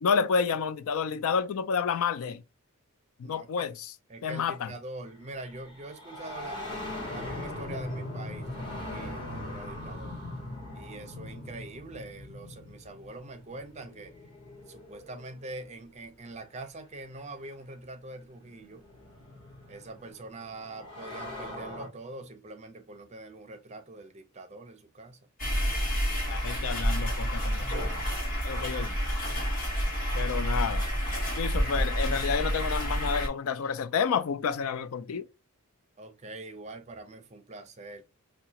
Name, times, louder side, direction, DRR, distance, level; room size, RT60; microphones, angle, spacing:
voice 1, 0.0-2.4 3.2-3.9 4.2-4.7 26.3-27.9 28.4-29.0 30.1-30.9 31.4-35.3, left 6 dB, 75° left, 0.4 m, -30 dB
voice 2, 3.2-3.7 4.1-6.6 7.1-10.2 10.7-14.1 14.7-18.8 19.7-25.2 36.0-38.0, right 2 dB, 30° right, 0.5 m, -44 dB
sound 1, 5.1-15.8 17.0-17.1 18.1-21.9, left 1 dB, 25° left, 1.3 m, -41 dB
sound 2, 25.4-33.3, equal, 40° left, 1.3 m, -29 dB
4.7 x 2.2 x 2.8 m
head